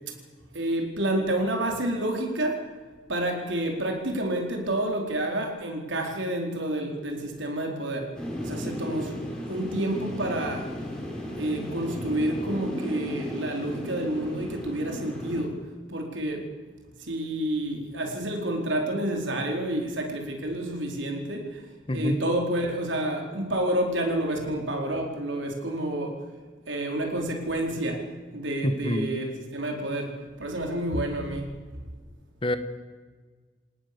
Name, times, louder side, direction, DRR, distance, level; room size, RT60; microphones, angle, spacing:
voice 1, 0.5-2.6 3.1-10.7 11.4-15.6 15.9-16.4 17.0-21.6 21.9-26.2 26.7-28.0 28.3-31.5, right 1 dB, 80° right, 2 dB, 4.4 m, -29 dB
sound 1, 8.1-15.4, equal, 5° left, 5.3 m, -35 dB
voice 2, 21.9-22.2 28.6-29.1 32.4-32.6, left 1 dB, 25° left, 10 dB, 1.5 m, -26 dB
27.0 x 19.0 x 7.0 m, 1.5 s
head